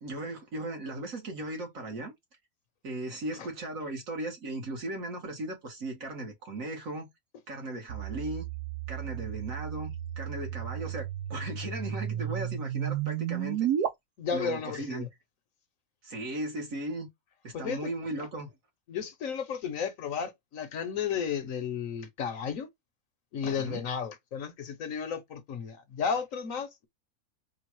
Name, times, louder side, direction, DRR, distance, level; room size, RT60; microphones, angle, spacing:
voice 1, 0.0-2.1 2.8-7.1 7.5-8.4 8.9-13.7 14.3-15.1 16.0-17.1 17.4-18.5 23.6-23.8, right 2 dB, 60° right, 1.8 m, -37 dB
sound 1, 7.9-13.9, right 10 dB, 80° right, 1.3 m, -33 dB
voice 2, 14.2-15.1 17.5-17.9 18.9-22.7 23.3-26.9, left 7 dB, 65° left, 1.1 m, -33 dB
3.9 x 2.4 x 4.4 m
omnidirectional pair, 1.6 m